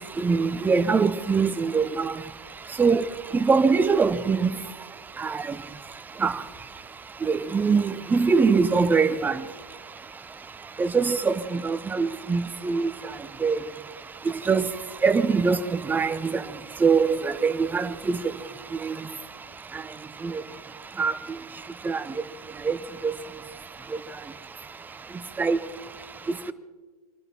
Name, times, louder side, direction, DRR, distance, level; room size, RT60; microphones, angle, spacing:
voice 1, 0.2-2.1 2.8-3.0 3.4-4.5 5.2-5.3 6.2-6.3 7.3-9.4 10.8-12.9 13.4-13.6 14.5-14.7 15.0-15.6 15.9-16.3 16.8-18.2 21.0-21.1 21.9-22.0 22.7-22.8 25.4-25.6, right 5 dB, 10° right, 0.6 m, -22 dB
24.0 x 13.0 x 4.4 m
hypercardioid pair, 115°, 19 cm